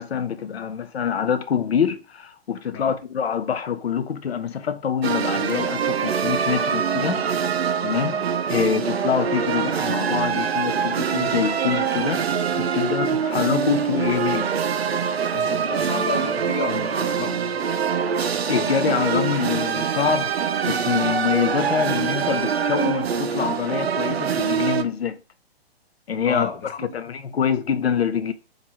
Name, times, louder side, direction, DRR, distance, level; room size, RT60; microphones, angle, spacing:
voice 1, 0.0-7.6 7.8-12.2 12.6-14.5 18.5-25.2 26.1-28.3, left 7 dB, 75° left, 0.5 m, -25 dB
sound 1, 5.0-24.8, right 7 dB, 75° right, 0.5 m, -24 dB
voice 2, 15.3-17.4 26.3-27.0, left 4 dB, 15° left, 0.4 m, -31 dB
3.2 x 2.5 x 4.2 m
figure-of-eight pair, 120°, 31 cm